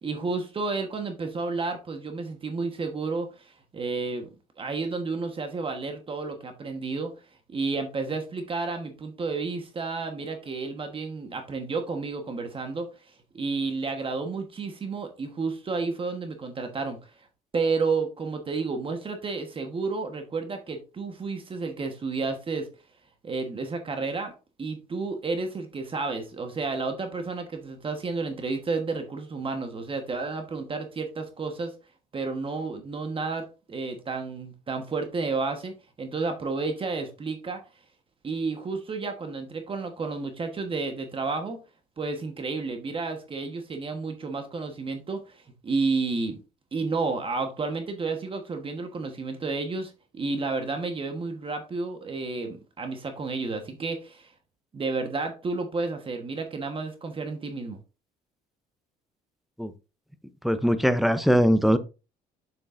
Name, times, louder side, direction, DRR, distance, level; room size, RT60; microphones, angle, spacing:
voice 1, 0.0-4.3 4.6-7.1 7.5-12.9 13.3-17.1 17.5-22.7 23.2-24.3 24.6-31.7 32.1-37.6 38.2-41.6 42.0-46.4 46.7-54.3 54.7-57.8, right 4 dB, 30° right, 1.2 m, -31 dB
voice 2, 60.4-61.8, equal, ahead, 0.6 m, -21 dB
7.4 x 6.4 x 2.6 m
cardioid pair, 110°, 17 cm